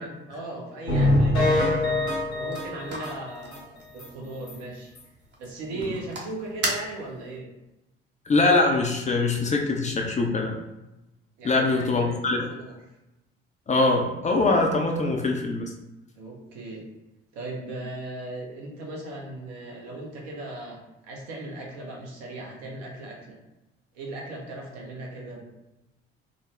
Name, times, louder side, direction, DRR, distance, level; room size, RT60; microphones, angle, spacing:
voice 1, 0.0-1.9 2.4-4.9 5.4-7.5 11.4-12.8 16.1-16.9 17.3-23.4 23.9-25.4, right 2 dB, 60° right, -1 dB, 0.9 m, -38 dB
sound 1, 0.9-3.6 4.0-4.1 4.5-4.6 5.0-5.1, left 1 dB, 80° left, 0.9 m, -24 dB
sound 2, 2.2-7.4, right 2 dB, 35° right, 0.8 m, -37 dB
voice 2, 8.3-10.6 11.4-12.5 13.7-15.7, left 3 dB, 25° left, 1 dB, 0.5 m, -23 dB
3.8 x 2.0 x 3.1 m, 0.98 s
figure-of-eight pair, 45°, 31 cm